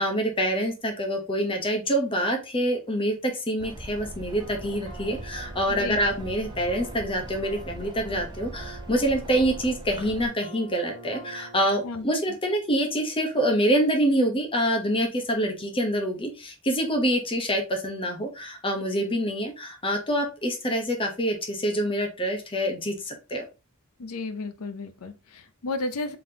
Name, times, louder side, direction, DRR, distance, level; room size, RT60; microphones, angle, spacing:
voice 1, 0.0-23.4, equal, 25° left, 0.9 m, -26 dB
sound 1, 3.6-10.3, right 1 dB, 20° right, 0.5 m, -40 dB
sound 2, 4.4-11.8, right 3 dB, 85° right, 1.1 m, -46 dB
voice 2, 5.7-6.0 11.8-12.1 24.0-26.2, left 2 dB, 75° left, 0.6 m, -33 dB
3.9 x 3.4 x 2.8 m
head